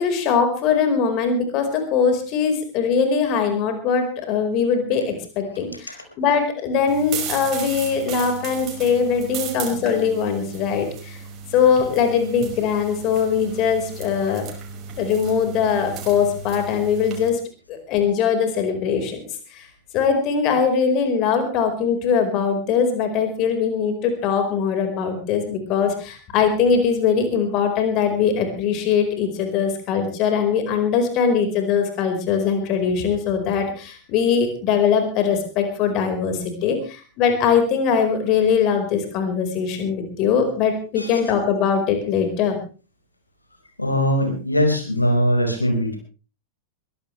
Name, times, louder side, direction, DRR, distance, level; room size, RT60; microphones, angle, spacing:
voice 1, 0.0-11.2 11.5-14.5 15.0-17.4 17.7-19.2 19.5-19.7 19.9-42.6, left 6 dB, 40° left, 6 dB, 4.7 m, -21 dB
sound 1, 6.9-17.3, right 6 dB, 35° right, 5.7 m, -35 dB
voice 2, 43.8-46.0, equal, 85° left, 4 dB, 4.9 m, -21 dB
22.5 x 16.5 x 3.3 m, 0.35 s
figure-of-eight pair, 90°, 0 cm